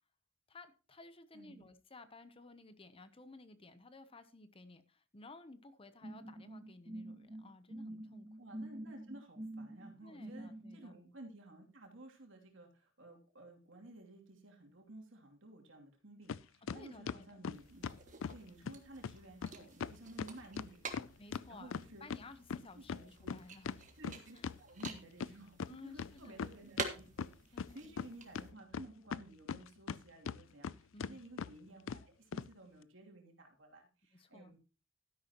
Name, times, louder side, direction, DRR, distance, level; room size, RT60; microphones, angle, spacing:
voice 1, 0.5-8.3 10.0-10.9 16.7-17.5 21.2-23.7 24.3-24.5 25.6-26.4 27.5-27.9 30.9-31.2 34.1-34.5, left 2 dB, 30° left, 0.8 m, -55 dB
voice 2, 1.3-1.7 8.4-17.9 18.3-22.1 22.7-23.4 24.0-34.6, right 1 dB, 75° right, 2.9 m, -55 dB
sound 1, 6.0-10.8, right 1 dB, 25° right, 1.2 m, -47 dB
sound 2, 16.3-16.4 16.7-18.4 18.7-18.8 19.0-19.2 19.4-19.5 19.8-22.2 22.5-25.3 25.6-25.7 26.0-26.9 27.2-28.1 28.4-30.0 30.3-30.7 31.0-31.1 31.4-31.5 31.9-32.0 32.3-32.5, left 6 dB, 90° left, 0.4 m, -40 dB
sound 3, 17.5-28.5, right 4 dB, 40° right, 1.6 m, -49 dB
12.5 x 10.5 x 3.0 m
head